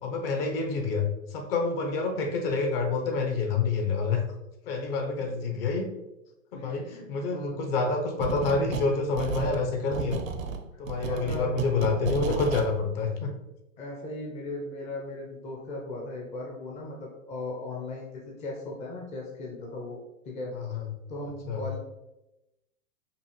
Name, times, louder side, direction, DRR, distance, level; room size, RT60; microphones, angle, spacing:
voice 1, 0.0-4.2 4.7-5.9 6.5-10.2 10.8-13.3 20.5-20.9 21.5-21.6, left 4 dB, 45° left, 3 dB, 0.8 m, -28 dB
voice 2, 6.5-7.7 11.0-11.5 13.8-20.0 20.3-20.5 21.1-21.8, left 2 dB, 15° left, -2 dB, 0.5 m, -37 dB
sound 1, 8.2-8.9 9.2-12.7, right 5 dB, 75° right, 0.7 m, -33 dB
5.3 x 2.3 x 3.0 m, 0.95 s
hypercardioid pair, 120°, 40 cm